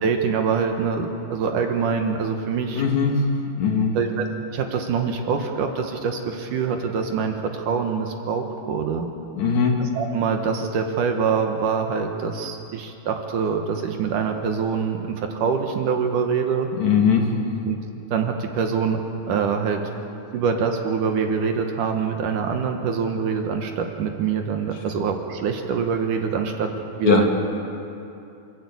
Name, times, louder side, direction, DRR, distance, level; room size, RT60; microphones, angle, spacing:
voice 1, 0.0-2.8 3.9-4.3 4.5-9.1 9.8-16.7 17.6-17.8 18.1-19.8 20.3-26.7 27.0-27.3, right 6 dB, 65° right, 4 dB, 2.6 m, -24 dB
voice 2, 2.8-3.2 3.6-4.0 9.3-9.8 16.8-17.3 27.0-27.2, left 6 dB, 55° left, 1 dB, 2.9 m, -19 dB
28.0 x 12.0 x 8.5 m, 2.7 s
omnidirectional pair, 4.2 m